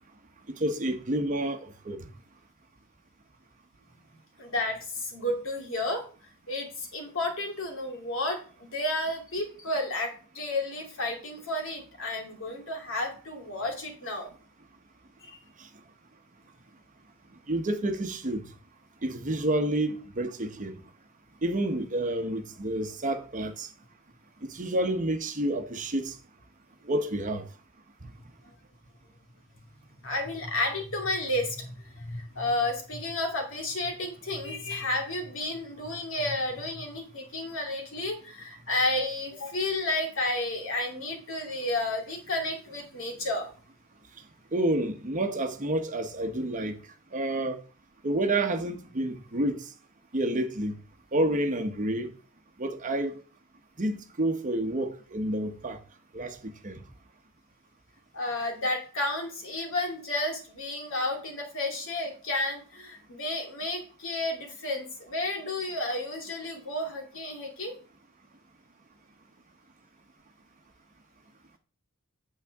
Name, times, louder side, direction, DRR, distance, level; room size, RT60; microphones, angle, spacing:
voice 1, 0.6-2.1 15.6-15.7 17.5-18.4 19.0-20.8 21.4-23.7 24.5-26.2 26.8-27.5 28.0-28.1 44.5-46.8 47.1-47.6 48.0-49.7 50.1-50.8 51.1-52.1 52.6-53.2 53.8-55.8 56.1-56.8, right 1 dB, 35° right, 0.9 m, -29 dB
voice 2, 4.4-6.0 6.5-14.3 15.2-15.4 30.0-43.5 58.1-67.7, left 2 dB, 65° left, 2.6 m, -32 dB
8.6 x 7.5 x 3.5 m
head